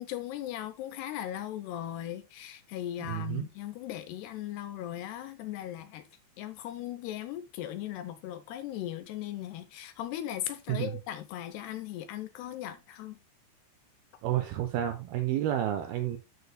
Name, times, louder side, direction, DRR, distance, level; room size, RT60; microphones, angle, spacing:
voice 1, 0.0-6.0 6.4-13.2, left 12 dB, 80° left, 2.6 m, -38 dB
voice 2, 3.0-3.5 10.7-11.0 14.2-16.2, right 12 dB, 90° right, 2.2 m, -30 dB
12.0 x 6.9 x 2.2 m
omnidirectional pair, 5.2 m